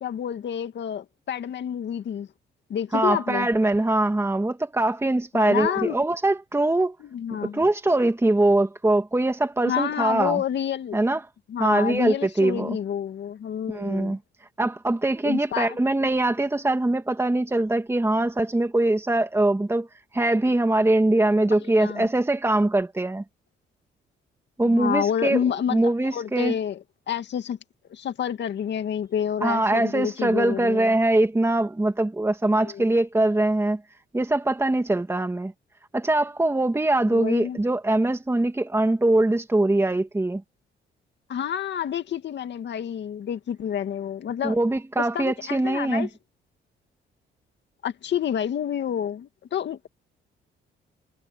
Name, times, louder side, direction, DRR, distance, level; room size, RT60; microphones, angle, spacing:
voice 1, 0.0-2.3 2.7-3.5 5.3-6.0 7.0-7.6 9.7-11.0 11.5-14.2 15.2-15.8 21.6-22.1 24.6-27.6 27.9-30.9 32.6-32.9 37.1-37.6 41.3-44.6 45.0-46.1 47.8-49.9, left 9 dB, 60° left, 2.2 m, -29 dB
voice 2, 2.9-6.9 7.4-10.4 10.9-11.2 11.6-12.8 13.7-14.2 14.6-19.9 20.1-23.2 24.6-25.4 25.7-26.5 29.4-33.8 34.1-35.5 35.9-40.4 44.4-46.1, right 2 dB, 10° right, 2.2 m, -22 dB
cardioid pair, 90°, 20 cm